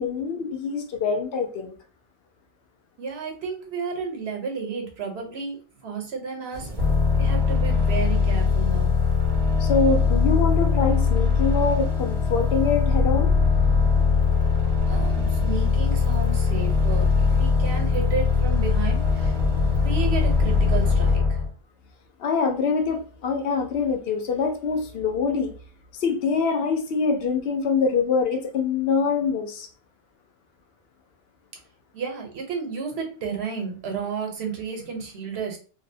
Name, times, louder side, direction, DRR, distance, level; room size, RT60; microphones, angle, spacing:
voice 1, 0.0-1.7 9.6-13.3 22.2-25.5 25.9-29.7, left 5 dB, 70° left, 5 dB, 0.8 m, -24 dB
voice 2, 3.0-5.6 5.8-6.7 7.2-8.9 14.9-19.4 19.8-21.4 31.9-35.6, right 5 dB, 90° right, 2 dB, 1.0 m, -32 dB
sound 1, 6.5-21.2, equal, 50° right, 0.6 m, -34 dB
sound 2, 6.8-21.5, left 6 dB, 45° left, 1.1 m, -21 dB
2.6 x 2.0 x 2.6 m, 0.38 s
omnidirectional pair, 1.1 m